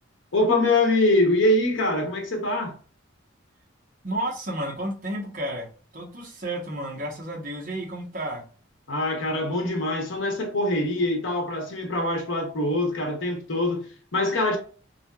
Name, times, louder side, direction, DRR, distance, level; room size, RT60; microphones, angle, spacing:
voice 1, 0.3-2.7 8.9-14.6, left 1 dB, 70° left, 0.9 m, -24 dB
voice 2, 4.0-8.4, right 1 dB, 40° right, 0.9 m, -32 dB
3.3 x 2.7 x 2.2 m
head